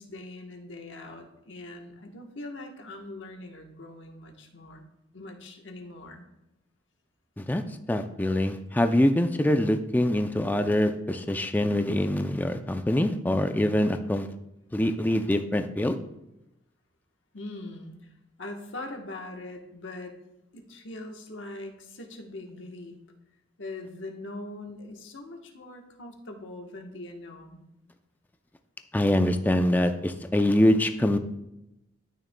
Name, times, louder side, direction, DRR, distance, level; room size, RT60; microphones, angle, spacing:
voice 1, 0.0-4.8 5.1-6.2 17.3-18.1 18.4-20.2 20.5-23.0 23.6-27.6, left 2 dB, 75° left, 3 dB, 1.1 m, -41 dB
voice 2, 7.9-14.3 14.7-15.9 28.9-31.2, left 1 dB, 10° left, 7 dB, 0.4 m, -24 dB
12.0 x 6.2 x 2.2 m, 0.88 s
head